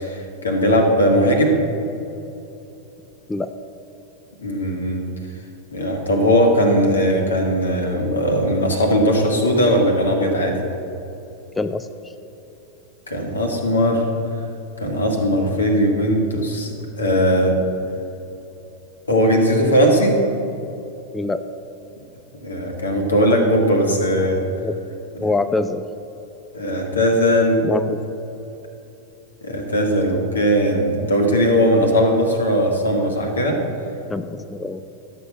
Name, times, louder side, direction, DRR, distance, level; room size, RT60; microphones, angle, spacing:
voice 1, 0.0-1.6 4.4-5.1 5.7-10.6 13.1-14.1 14.8-17.6 19.1-20.2 22.4-24.4 25.1-25.3 26.5-27.7 29.4-33.6, equal, 75° left, 2 dB, 1.8 m, -19 dB
voice 2, 11.6-12.1 21.1-21.5 24.6-24.7 25.2-25.8 27.6-28.0 34.1-34.8, left 2 dB, 10° left, 9 dB, 0.4 m, -24 dB
12.5 x 7.0 x 6.4 m, 2.9 s
figure-of-eight pair, 90°, 0 cm